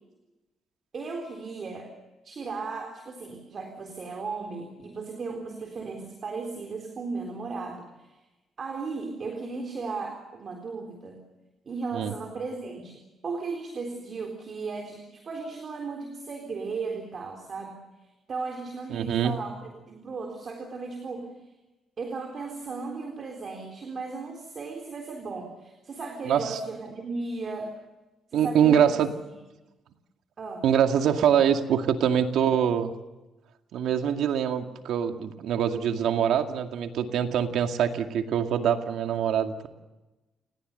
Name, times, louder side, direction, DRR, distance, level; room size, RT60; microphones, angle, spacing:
voice 1, 0.9-1.9 2.2-8.2 8.6-11.2 11.7-17.8 18.3-19.6 19.9-21.3 22.0-27.7 28.3-29.0 30.4-30.6, right 4 dB, 45° right, 3 dB, 3.8 m, -36 dB
voice 2, 18.9-19.4 26.3-26.6 28.3-29.1 30.6-32.9 33.7-39.7, right 8 dB, 80° right, 6 dB, 2.1 m, -24 dB
30.0 x 19.0 x 6.8 m, 1.1 s
cardioid pair, 90°, 0 cm